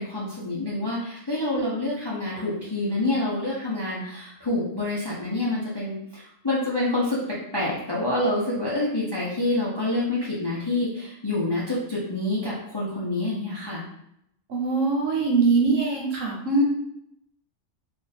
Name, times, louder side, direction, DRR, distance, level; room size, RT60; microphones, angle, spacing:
voice 1, 0.0-7.2 7.5-13.8, left 2 dB, 30° left, -7 dB, 0.4 m, -27 dB
voice 2, 14.5-16.6, right 4 dB, 70° right, -1 dB, 1.1 m, -22 dB
2.5 x 2.5 x 4.0 m, 0.76 s
omnidirectional pair, 1.4 m